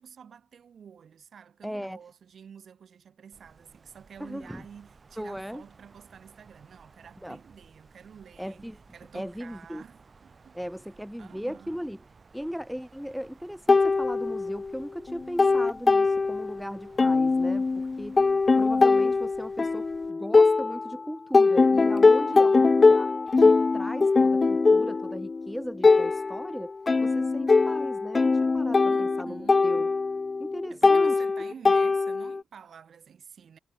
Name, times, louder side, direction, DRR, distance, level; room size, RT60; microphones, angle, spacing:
voice 1, 0.0-10.6 11.2-11.8 22.3-22.9 28.9-29.7 30.7-33.6, right 7 dB, 65° right, 3.8 m, -49 dB
voice 2, 1.6-2.0 4.2-4.7 5.2-5.6 7.2-7.4 8.4-8.8 9.1-9.8 10.5-12.0 12.3-18.3 18.6-26.7 27.0-29.9 30.4-31.2, equal, ahead, 1.9 m, -37 dB
Wind, 3.3-20.1, right 4 dB, 35° right, 3.4 m, -56 dB
sound 1, 13.7-14.8 15.1-16.6 17.0-21.0 21.3-32.4, left 4 dB, 30° left, 0.4 m, -22 dB
wide cardioid pair, 120°, 0 cm